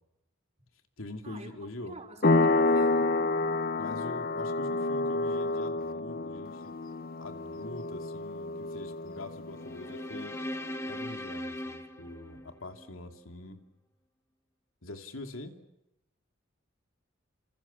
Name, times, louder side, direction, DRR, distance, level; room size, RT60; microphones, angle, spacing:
voice 1, 1.0-2.0 3.8-6.8 7.2-10.3 10.9-13.6 14.8-15.5, left 2 dB, 85° left, 5 dB, 2.8 m, -44 dB
voice 2, 1.9-3.0, right 2 dB, 35° right, 3 dB, 4.7 m, -47 dB
sound 1, 2.2-10.6, left 2 dB, 45° left, 1.0 m, -29 dB
sound 2, 9.5-12.9, left 1 dB, 15° left, 1.5 m, -39 dB
29.0 x 28.0 x 7.2 m, 0.85 s
head